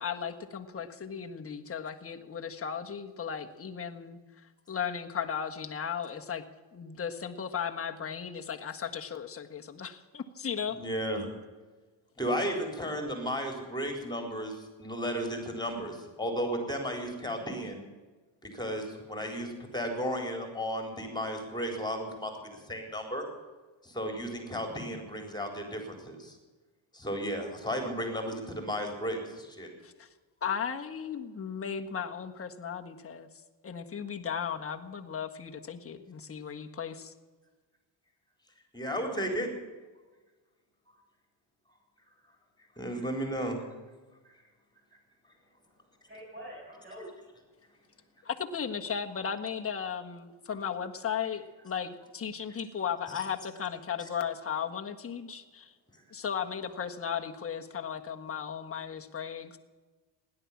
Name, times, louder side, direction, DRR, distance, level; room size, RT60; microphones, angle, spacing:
voice 1, 0.0-6.4 6.7-10.8 29.8-30.1 30.4-33.3 33.6-37.1 48.2-55.7 56.1-59.6, left 7 dB, 30° left, 4 dB, 1.6 m, -36 dB
voice 2, 10.7-11.3 12.2-14.5 14.8-17.8 18.4-23.3 23.8-26.4 26.9-29.7 38.7-39.5 42.8-43.7, equal, 10° left, 3 dB, 4.1 m, -34 dB
voice 3, 45.4-47.3, equal, 25° right, -4 dB, 7.0 m, -47 dB
17.0 x 11.0 x 7.3 m, 1.3 s
cardioid pair, 105°, 45 cm